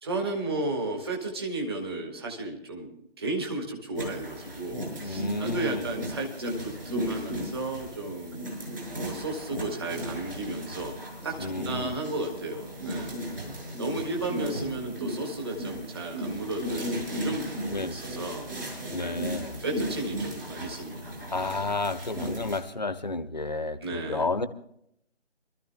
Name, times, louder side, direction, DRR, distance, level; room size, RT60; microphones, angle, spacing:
voice 1, 0.0-8.4 8.9-11.0 11.2-13.2 13.8-18.5 19.0-19.2 19.6-21.1 23.8-24.3, right 2 dB, 20° right, 2 dB, 1.7 m, -34 dB
sound 1, 3.9-22.6, equal, 55° right, 7.0 m, -36 dB
voice 2, 5.0-5.9 11.4-11.9 13.4-13.5 17.7-18.0 18.9-19.6 21.3-24.5, left 3 dB, 40° left, 12 dB, 0.8 m, -31 dB
28.5 x 13.5 x 2.2 m, 0.73 s
figure-of-eight pair, 155°, 34 cm